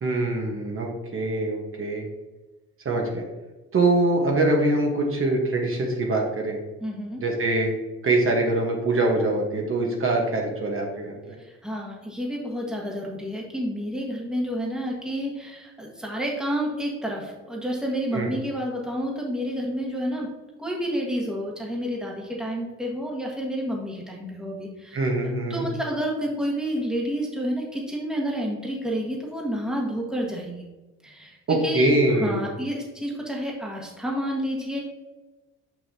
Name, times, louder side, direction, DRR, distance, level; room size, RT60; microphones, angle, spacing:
voice 1, 0.0-2.1 2.8-3.2 3.7-6.6 7.2-7.7 8.0-11.1 18.1-18.3 24.9-25.6 31.5-32.5, right 2 dB, 45° right, 0 dB, 1.3 m, -23 dB
voice 2, 6.8-7.2 11.4-20.3 20.6-25.2 25.5-30.7 31.0-34.8, equal, ahead, -2 dB, 1.6 m, -30 dB
6.1 x 5.7 x 2.8 m, 1.1 s
cardioid pair, 90°, 30 cm